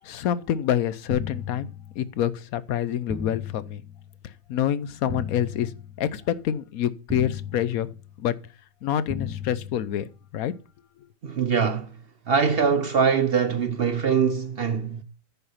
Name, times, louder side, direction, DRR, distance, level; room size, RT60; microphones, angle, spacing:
voice 1, 0.0-1.7 1.9-3.8 4.2-5.7 6.0-7.9 8.2-8.4 8.8-10.5, left 10 dB, 75° left, 1.1 m, -27 dB
sound 1, 1.1-2.3 3.1-4.3 5.1-6.3 7.1-8.3 9.1-10.3, left 6 dB, 10° right, 1.3 m, -36 dB
voice 2, 11.2-11.9 12.3-15.0, right 6 dB, 55° right, 0.7 m, -23 dB
9.9 x 5.8 x 5.5 m
omnidirectional pair, 1.6 m